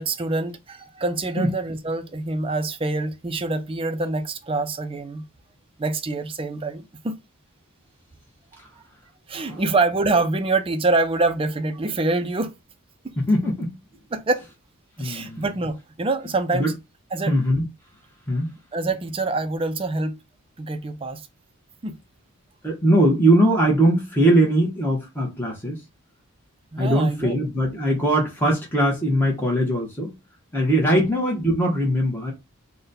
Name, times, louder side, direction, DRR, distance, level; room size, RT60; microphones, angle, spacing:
voice 1, 0.0-5.2 5.8-7.2 9.3-12.5 13.0-13.1 14.1-14.4 15.0-16.7 17.1-17.3 18.7-20.1 20.6-21.3 21.8-22.0 26.7-27.3 30.8-31.1, right 3 dB, 25° right, 0.4 m, -25 dB
voice 2, 13.2-13.7 15.0-15.4 16.5-16.7 17.3-17.7 18.3-18.5 22.6-25.8 26.8-30.1 30.5-32.3, right 1 dB, 10° left, 0.9 m, -21 dB
4.0 x 2.2 x 4.0 m
head